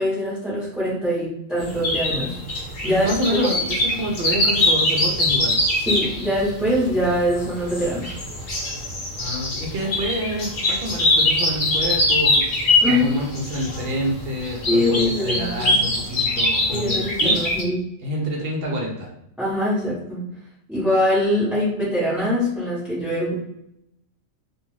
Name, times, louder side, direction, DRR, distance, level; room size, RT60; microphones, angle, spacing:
voice 1, 0.0-2.4 2.8-3.1 3.4-3.5 5.8-8.1 12.8-13.3 14.7-15.8 16.7-17.8 19.4-20.2 20.7-23.4, equal, ahead, -9 dB, 0.9 m, -23 dB
sound 1, 1.6-17.6, left 1 dB, 50° left, 0.9 m, -23 dB
voice 2, 2.8-5.6 9.2-12.4 12.8-17.3 18.0-19.1, equal, 55° right, -1 dB, 0.7 m, -27 dB
2.5 x 2.4 x 3.1 m, 0.79 s
omnidirectional pair, 1.4 m